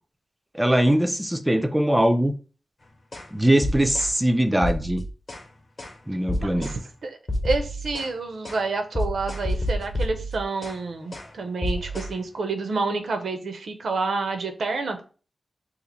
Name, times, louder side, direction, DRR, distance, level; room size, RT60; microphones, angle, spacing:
voice 1, 0.5-2.3 3.3-5.0 6.1-6.7, right 1 dB, 10° right, 0.3 m, -21 dB
sound 1, 3.1-3.3 3.6-4.1 4.6-5.5 5.8-6.0 6.3-6.8 7.3-8.1 8.4-8.6 8.9-10.8 11.1-11.3 11.6-12.1, left 1 dB, 40° left, 0.8 m, -29 dB
voice 2, 6.4-7.2 7.4-15.0, right 3 dB, 80° right, 0.5 m, -29 dB
2.8 x 2.4 x 3.9 m
wide cardioid pair, 110°, 0 cm